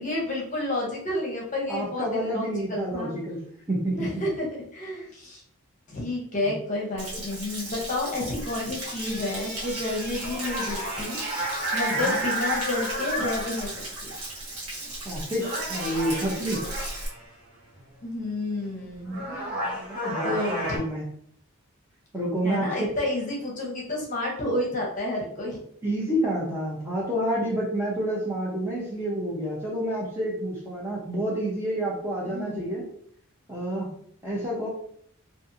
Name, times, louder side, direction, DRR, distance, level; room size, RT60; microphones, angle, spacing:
voice 1, 0.0-3.1 3.9-5.4 5.9-14.1 18.0-19.2 20.1-20.8 22.4-25.6 32.2-32.7, left 2 dB, 35° left, -3 dB, 0.7 m, -30 dB
voice 2, 1.7-3.4 3.7-4.1 6.5-6.6 12.0-12.2 15.0-16.6 19.0-21.0 22.1-22.7 25.8-32.8 33.5-33.9 34.2-34.7, right 1 dB, 10° right, -5 dB, 0.5 m, -29 dB
Stream / Splash splatter / Trickle dribble, 7.0-17.1, right 1 dB, 80° right, 1.0 m, -37 dB
sound 1, 8.4-13.9 14.8-15.1 15.4-17.2 18.6-18.7 19.1-20.8, right 1 dB, 45° right, 1.0 m, -32 dB
2.5 x 2.4 x 2.6 m, 0.65 s
head